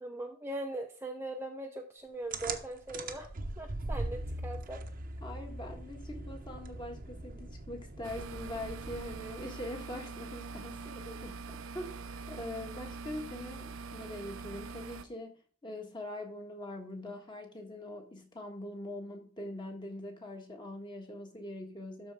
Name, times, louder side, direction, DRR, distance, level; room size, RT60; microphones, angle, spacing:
voice 1, 0.0-3.3 3.6-4.8, right 1 dB, 10° right, 0.6 m, -40 dB
sound 1, 2.3-9.5, right 2 dB, 40° right, 0.9 m, -41 dB
voice 2, 5.2-15.3 15.6-22.1, left 1 dB, 20° left, 1.4 m, -43 dB
sound 2, 8.0-15.1, right 4 dB, 70° right, 0.7 m, -43 dB
12.5 x 4.3 x 3.6 m
head